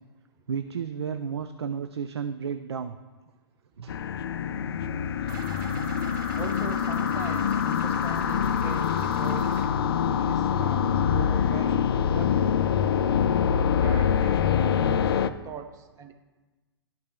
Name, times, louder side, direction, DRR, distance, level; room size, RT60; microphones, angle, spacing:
voice 1, 0.5-3.0 3.8-3.9, right 7 dB, 80° right, 10 dB, 0.4 m, -32 dB
sound 1, 3.9-15.3, left 8 dB, 65° left, 0.4 m, -25 dB
sound 2, 5.3-9.7, right 5 dB, 50° right, 1.0 m, -41 dB
voice 2, 6.4-9.7 10.0-12.6 13.4-16.1, right 7 dB, 25° right, 6 dB, 0.7 m, -41 dB
12.0 x 5.6 x 2.3 m, 1.2 s
figure-of-eight pair, 115°, 14 cm